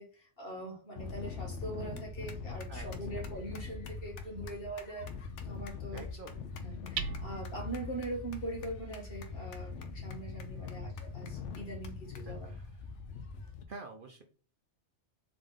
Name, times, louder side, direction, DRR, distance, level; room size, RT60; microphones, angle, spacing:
voice 1, 0.0-6.0 6.6-12.5, right 1 dB, 50° left, -1 dB, 1.9 m, -42 dB
sound 1, 1.0-13.6, left 5 dB, 75° left, 1.0 m, -42 dB
Hammer, 1.8-13.5, right 7 dB, 85° right, 1.0 m, -48 dB
voice 2, 2.7-3.2 5.9-6.4 10.6-10.9 12.2-12.7 13.7-14.2, right 3 dB, 55° right, 5 dB, 0.8 m, -49 dB
3.9 x 3.6 x 3.5 m, 0.38 s
omnidirectional pair, 1.2 m